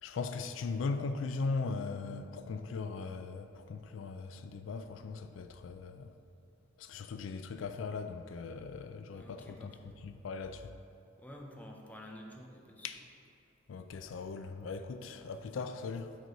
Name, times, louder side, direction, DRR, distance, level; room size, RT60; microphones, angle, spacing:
voice 1, 0.0-6.1 6.8-9.7 10.0-10.7 12.8-13.0 13.7-16.2, left 4 dB, 85° left, 0.4 m, -39 dB
voice 2, 9.1-9.9 11.2-12.9, equal, 10° left, 0.7 m, -50 dB
6.5 x 4.6 x 5.1 m
head